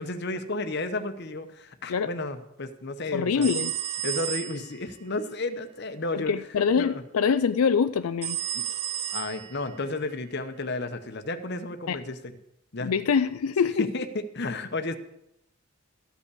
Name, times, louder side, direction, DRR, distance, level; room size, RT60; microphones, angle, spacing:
voice 1, 0.0-3.5 4.0-6.3 6.8-7.0 8.5-8.6 9.1-12.3 12.7-12.9 13.8-14.1 14.3-15.0, left 2 dB, 50° left, 9 dB, 0.9 m, -32 dB
voice 2, 3.1-3.7 6.1-8.4 11.9-12.0 12.8-13.9, left 6 dB, 85° left, 12 dB, 0.4 m, -24 dB
sound 1, 3.4-4.8 8.2-9.8, right 11 dB, 30° right, 0.5 m, -32 dB
14.0 x 5.4 x 8.4 m, 0.81 s
head